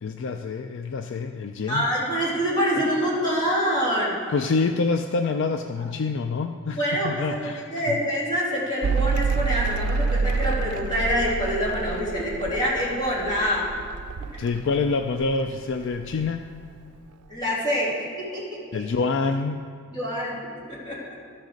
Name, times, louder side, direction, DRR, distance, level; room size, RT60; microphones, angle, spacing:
voice 1, 0.0-1.9 4.3-6.8 7.0-8.0 14.4-16.5 18.7-19.6, left 4 dB, 55° left, 7 dB, 0.4 m, -26 dB
voice 2, 1.7-4.2 6.7-13.7 17.3-18.8 19.9-20.4 20.7-21.0, equal, 20° left, -7 dB, 2.9 m, -26 dB
Mechanical fan, 8.8-15.7 15.9-16.8, right 4 dB, 90° right, 0.4 m, -28 dB
13.0 x 6.6 x 6.4 m, 2.2 s
head